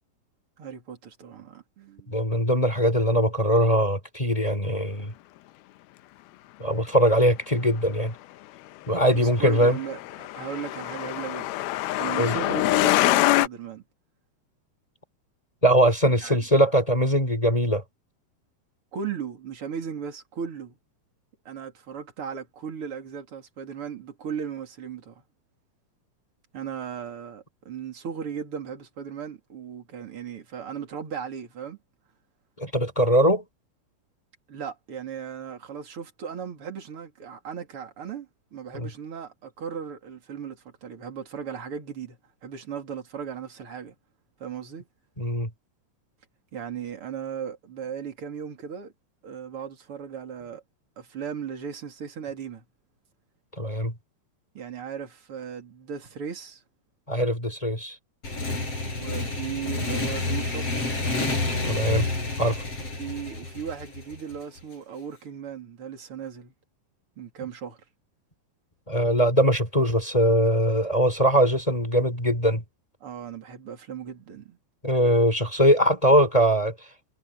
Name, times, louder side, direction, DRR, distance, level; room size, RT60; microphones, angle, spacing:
voice 1, 0.6-2.2 9.1-11.6 12.0-13.8 16.2-16.5 18.9-20.8 21.5-25.2 26.5-31.8 34.5-44.0 44.4-44.8 46.5-48.9 49.2-50.6 51.0-52.6 54.6-56.6 58.8-60.7 63.0-66.5 67.2-67.8 73.0-74.6, right 7 dB, 35° right, 3.4 m, -37 dB
voice 2, 2.1-5.1 6.6-8.1 8.9-9.8 12.2-12.3 15.6-17.8 32.6-33.4 38.7-38.9 45.2-45.5 53.6-53.9 57.1-57.9 61.6-62.1 62.4-62.6 68.9-72.6 74.8-76.7, equal, 10° left, 3.1 m, -21 dB
Truck, 9.3-13.5, left 16 dB, 80° left, 2.6 m, -24 dB
Motorcycle / Engine, 58.2-64.6, left 2 dB, 35° left, 8.9 m, -29 dB
omnidirectional pair, 4.5 m